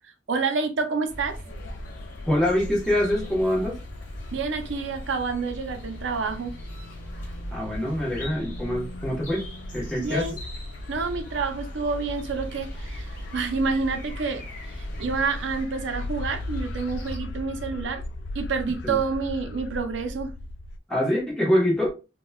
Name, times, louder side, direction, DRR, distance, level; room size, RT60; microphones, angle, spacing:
voice 1, 0.0-1.4 4.3-6.6 10.0-10.4 10.9-18.0 18.3-20.3, right 4 dB, 90° right, 0.5 m, -28 dB
sound 1, 1.1-17.2, equal, 45° left, 1.1 m, -39 dB
sound 2, 1.5-20.8, left 2 dB, 80° left, 0.4 m, -39 dB
voice 2, 2.3-3.8 7.5-9.5 9.7-10.3 18.8-19.0 20.9-21.9, left 1 dB, 5° left, 1.0 m, -24 dB
4.0 x 2.2 x 2.3 m
head